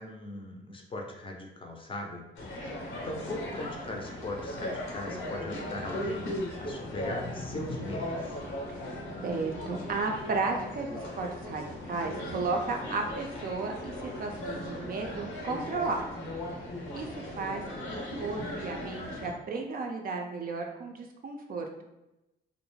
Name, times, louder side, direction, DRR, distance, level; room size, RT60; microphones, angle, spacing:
voice 1, 0.0-2.3 2.9-8.4, left 1 dB, 25° left, 2 dB, 0.5 m, -39 dB
sound 1, 2.4-19.3, left 1 dB, 85° left, 0.7 m, -38 dB
voice 2, 9.2-16.1 16.9-17.9 18.2-21.7, right 4 dB, 50° right, 3 dB, 0.4 m, -34 dB
2.3 x 2.0 x 3.1 m, 0.94 s
cardioid pair, 90°, 20 cm